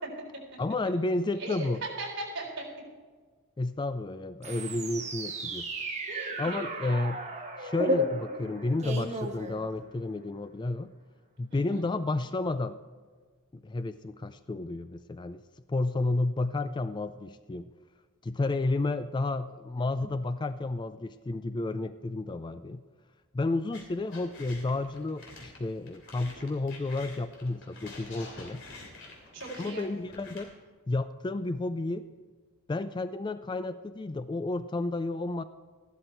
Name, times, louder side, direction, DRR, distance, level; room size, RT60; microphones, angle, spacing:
voice 1, 0.6-1.8 3.6-5.6 6.4-7.2 7.6-10.9 11.4-12.8 13.5-15.4 15.7-17.7 18.2-22.8 23.3-28.6 29.6-30.5 30.9-32.0 32.7-35.4, left 2 dB, 20° left, 12 dB, 0.3 m, -31 dB
voice 2, 1.4-2.6 6.1-6.9 11.5-11.8 26.2-26.5 29.3-29.9, right 2 dB, 55° right, -2 dB, 4.0 m, -38 dB
sound 1, 4.4-10.1, equal, 30° right, 1.3 m, -34 dB
sound 2, 23.7-30.4, left 2 dB, 55° left, 3.0 m, -48 dB
14.0 x 12.0 x 4.5 m, 1.5 s
head